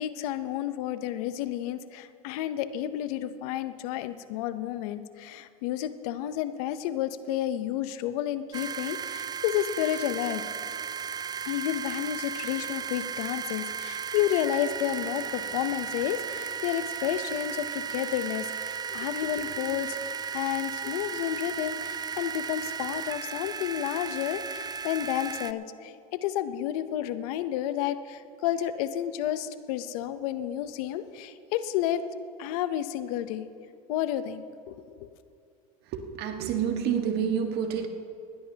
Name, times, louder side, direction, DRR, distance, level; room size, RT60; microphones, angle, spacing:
voice 1, 0.0-10.4 11.5-32.0 32.4-33.5 33.9-34.8, left 11 dB, 80° left, 12 dB, 0.8 m, -31 dB
sound 1, 8.5-25.5, right 7 dB, 20° right, 0.4 m, -35 dB
voice 2, 35.9-37.9, right 8 dB, 60° right, 5 dB, 1.6 m, -28 dB
21.0 x 16.0 x 2.9 m, 2.4 s
supercardioid pair, 100°, 19 cm